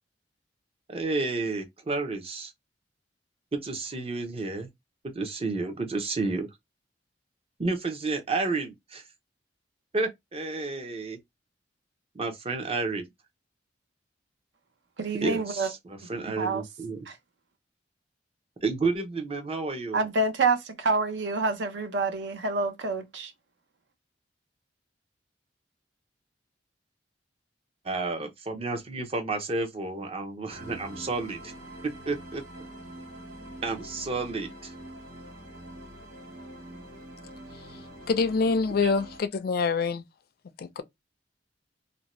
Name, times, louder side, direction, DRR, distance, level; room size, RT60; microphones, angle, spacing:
voice 1, 0.9-2.5 3.5-4.7 5.0-6.5 7.6-9.0 9.9-11.2 12.1-13.1 15.2-17.1 18.6-20.0 27.8-31.5 31.8-32.4 33.6-34.7 38.8-38.9, right 3 dB, 35° right, 0.6 m, -31 dB
voice 2, 15.0-15.7 16.4-16.7 17.1-17.2 19.9-23.3, right 3 dB, 70° right, 0.6 m, -27 dB
sound 1, 30.5-39.2, right 1 dB, 90° right, 1.1 m, -45 dB
voice 3, 38.1-40.1 40.6-40.8, left 4 dB, 55° left, 0.4 m, -25 dB
2.6 x 2.1 x 3.0 m
head